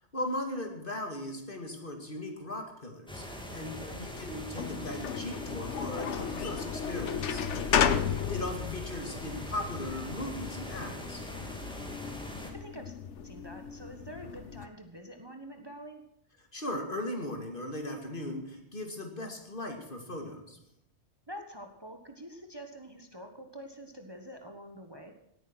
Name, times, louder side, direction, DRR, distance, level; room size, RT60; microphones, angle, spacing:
voice 1, 0.1-7.9 8.3-11.2 16.5-20.6, left 1 dB, 50° left, 3 dB, 2.7 m, -38 dB
sound 1, 3.1-12.5, left 1 dB, 5° left, 2.4 m, -42 dB
voice 2, 3.8-4.1 12.5-12.9 13.2-16.0 21.3-25.1, equal, 20° right, 5 dB, 1.4 m, -46 dB
sound 2, 4.1-14.7, left 8 dB, 85° left, 1.2 m, -34 dB
18.0 x 9.5 x 6.2 m, 0.82 s
omnidirectional pair, 1.2 m